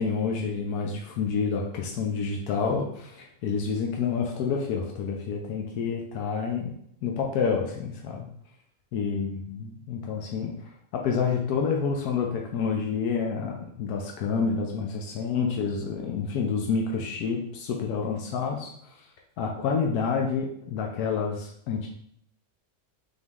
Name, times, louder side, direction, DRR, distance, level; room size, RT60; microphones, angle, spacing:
voice 1, 0.0-8.3 8.9-10.5 11.0-18.7 19.4-21.9, left 5 dB, 85° left, 0 dB, 1.1 m, -28 dB
4.1 x 3.0 x 3.5 m, 0.70 s
omnidirectional pair, 1.5 m